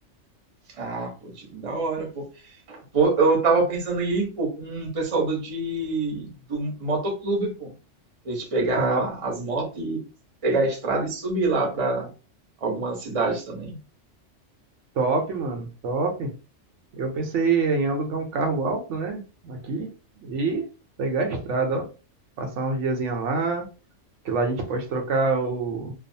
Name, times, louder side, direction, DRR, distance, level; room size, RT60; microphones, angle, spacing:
voice 1, 0.7-2.2 2.7-7.7 8.2-10.0 10.4-12.1 12.6-13.8, right 3 dB, 35° right, 1 dB, 0.7 m, -25 dB
voice 2, 15.0-16.3 17.0-19.9 20.2-20.6 21.0-21.8 22.4-23.6 24.2-25.9, right 3 dB, 80° right, 4 dB, 1.0 m, -26 dB
2.4 x 2.3 x 2.6 m, 0.34 s
omnidirectional pair, 1.2 m